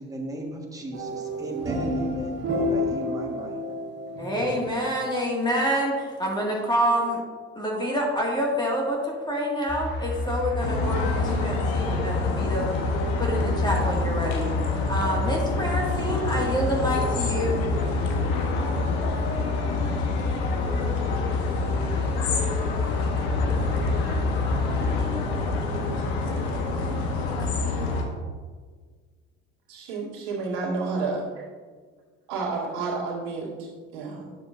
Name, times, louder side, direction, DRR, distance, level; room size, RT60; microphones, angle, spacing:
voice 1, 0.0-3.6, right 1 dB, 10° right, 0 dB, 1.5 m, -36 dB
sound 1, 0.9-5.2, left 1 dB, 35° right, 1.6 m, -30 dB
voice 2, 4.2-7.2 7.5-12.7 13.2-14.5 14.9-17.6 27.1-27.3, equal, 15° left, -2 dB, 1.9 m, -27 dB
sound 2, 9.7-25.1, left 3 dB, 35° left, 1.7 m, -29 dB
sound 3, 10.6-28.0, left 3 dB, 85° left, 1.1 m, -28 dB
voice 3, 29.7-31.4 32.3-34.4, right 4 dB, 85° right, -3 dB, 2.0 m, -30 dB
9.6 x 6.7 x 2.6 m, 1.5 s
supercardioid pair, 75°, 30 cm